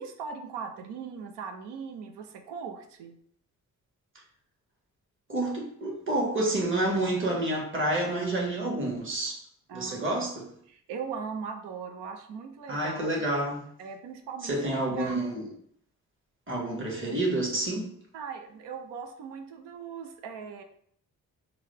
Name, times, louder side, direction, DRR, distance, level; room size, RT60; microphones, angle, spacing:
voice 1, 0.0-3.2 9.7-10.0 10.7-13.1 13.8-15.2 18.1-20.6, right 6 dB, 80° right, 5 dB, 0.6 m, -39 dB
voice 2, 5.3-9.4 9.7-10.5 12.7-13.6 14.4-15.5 16.5-17.9, right 1 dB, 30° right, -2 dB, 1.5 m, -29 dB
3.8 x 2.3 x 3.3 m, 0.64 s
hypercardioid pair, 40°, 41 cm